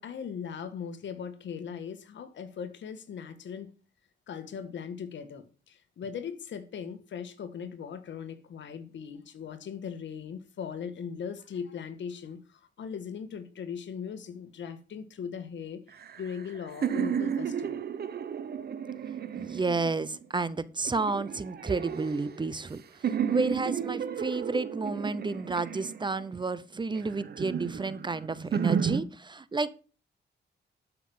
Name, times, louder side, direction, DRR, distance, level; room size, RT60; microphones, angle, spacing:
voice 1, 0.0-3.7 4.3-15.8 16.2-17.8, left 7 dB, 75° left, 1.5 m, -39 dB
sound 1, 15.9-20.2 20.8-22.7 23.0-26.4 26.9-29.0, right 7 dB, 55° right, 1.0 m, -33 dB
voice 2, 19.3-29.7, right 3 dB, 25° right, 0.7 m, -31 dB
12.5 x 6.0 x 5.5 m
cardioid pair, 95°, 19 cm